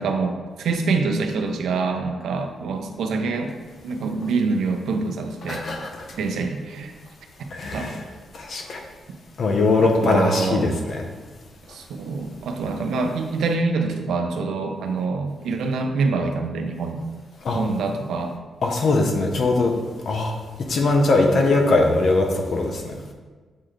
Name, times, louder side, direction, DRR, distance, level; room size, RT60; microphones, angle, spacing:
voice 1, 0.0-3.5 3.8-5.6 6.2-6.9 7.7-7.9 9.8-10.7 11.7-17.0 17.5-18.3 21.3-21.4, right 4 dB, 80° right, 5 dB, 0.6 m, -25 dB
voice 2, 5.4-6.0 7.5-8.0 8.3-8.8 9.4-11.1 17.4-17.6 18.6-19.7 20.1-20.3 20.7-22.9, left 2 dB, 50° left, 2 dB, 0.8 m, -21 dB
7.4 x 3.8 x 3.3 m, 1.4 s
wide cardioid pair, 140°, 0 cm